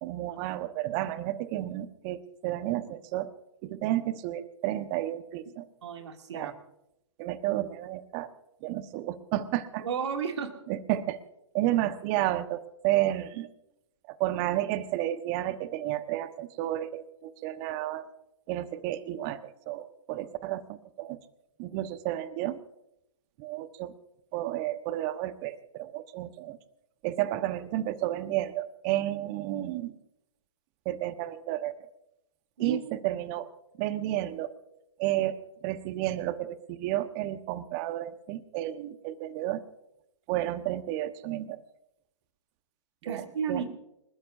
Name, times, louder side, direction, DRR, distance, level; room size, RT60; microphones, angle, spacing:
voice 1, 0.0-3.3 3.6-5.6 6.3-6.5 7.2-8.3 8.6-9.9 10.7-11.2 11.5-13.5 14.1-18.1 18.5-21.2 21.6-22.6 23.4-23.9 24.3-26.6 27.0-30.0 30.8-31.9 32.6-33.5 33.8-34.5 35.0-39.6 40.3-41.6 43.0-43.6, right 14 dB, 35° right, 11 dB, 1.2 m, -31 dB
voice 2, 5.8-6.5 9.8-10.5 32.6-32.8 43.0-43.7, right 6 dB, 60° right, 4 dB, 2.7 m, -33 dB
29.5 x 13.5 x 2.7 m, 0.85 s
figure-of-eight pair, 125°, 16 cm